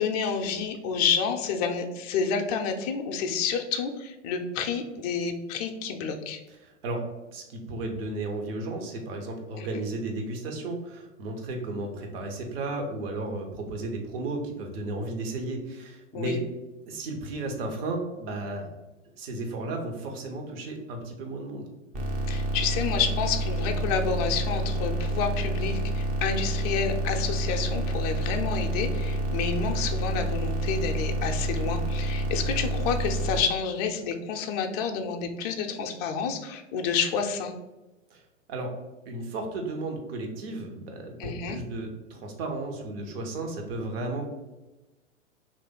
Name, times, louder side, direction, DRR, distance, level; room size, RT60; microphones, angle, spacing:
voice 1, 0.0-6.4 9.6-9.7 16.1-16.4 22.3-37.5 41.2-41.6, left 6 dB, 35° left, 4 dB, 0.4 m, -29 dB
voice 2, 6.5-16.4 16.9-18.7 19.2-21.7 38.1-38.7 39.1-44.3, right 2 dB, 50° right, 3 dB, 1.0 m, -34 dB
sound 1, 21.9-33.4, right 1 dB, 20° right, 0.5 m, -28 dB
3.2 x 2.5 x 3.6 m, 1.0 s
figure-of-eight pair, 105°, 37 cm